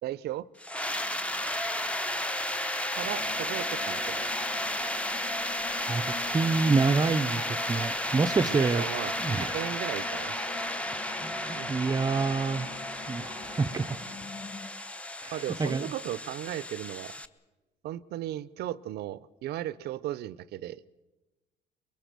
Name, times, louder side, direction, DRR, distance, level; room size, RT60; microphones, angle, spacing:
voice 1, 0.0-0.5 2.9-4.3 8.4-10.5 11.6-11.8 15.3-17.2 17.8-20.8, right 13 dB, 70° right, 19 dB, 0.7 m, -36 dB
sound 1, 0.6-17.3, left 1 dB, 5° left, 0.9 m, -33 dB
sound 2, 3.0-14.7, left 6 dB, 80° left, 2.7 m, -46 dB
voice 2, 5.9-8.9 9.2-9.6 11.1-14.0 15.2-15.9, right 4 dB, 20° right, 7 dB, 0.7 m, -28 dB
24.0 x 22.5 x 6.8 m, 1.2 s
cardioid pair, 110°, 17 cm